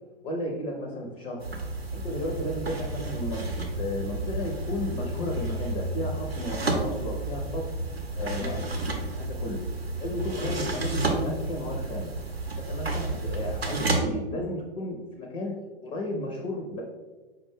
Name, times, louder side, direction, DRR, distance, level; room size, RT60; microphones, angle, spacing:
voice 1, 0.2-1.4 1.9-3.5 3.8-7.7 8.2-8.7 9.1-9.7 10.0-12.1 12.6-15.6 15.8-16.8, left 1 dB, 25° left, 1 dB, 0.5 m, -33 dB
sound 1, 1.4-14.0, right 2 dB, 85° right, 0.6 m, -31 dB
4.9 x 2.2 x 3.4 m, 1.2 s
figure-of-eight pair, 100°, 30 cm